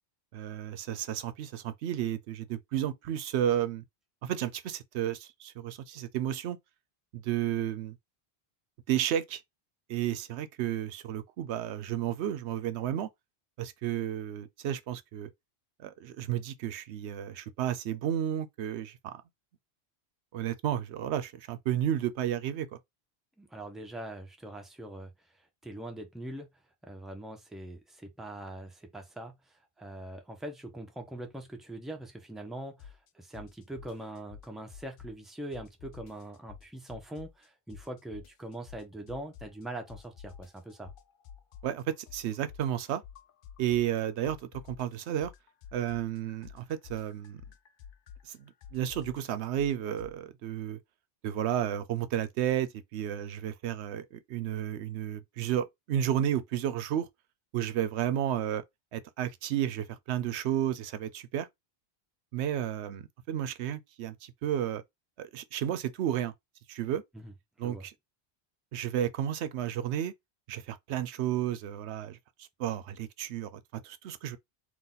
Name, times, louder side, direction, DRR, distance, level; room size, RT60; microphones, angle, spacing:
voice 1, 0.3-3.8 4.2-6.6 7.1-8.0 8.9-9.4 9.9-13.1 13.6-15.3 15.8-19.2 20.3-22.8 41.6-43.0 43.6-45.3 45.7-47.4 48.2-50.8 51.2-57.1 57.5-58.6 58.9-61.5 62.3-64.8 65.2-66.3 66.7-67.0 67.6-67.9 68.7-70.1 70.5-74.4, right 10 dB, 85° right, 0.8 m, -32 dB
voice 2, 23.4-25.1 25.6-26.5 26.8-40.9 67.1-67.3 67.6-67.8, right 1 dB, ahead, 0.9 m, -42 dB
sound 1, 32.8-33.1 33.3-35.3 35.5-37.5 37.7-39.6 39.9-44.0 44.2-50.2, left 8 dB, 60° left, 0.7 m, -50 dB
4.0 x 2.5 x 3.8 m
omnidirectional pair, 1.1 m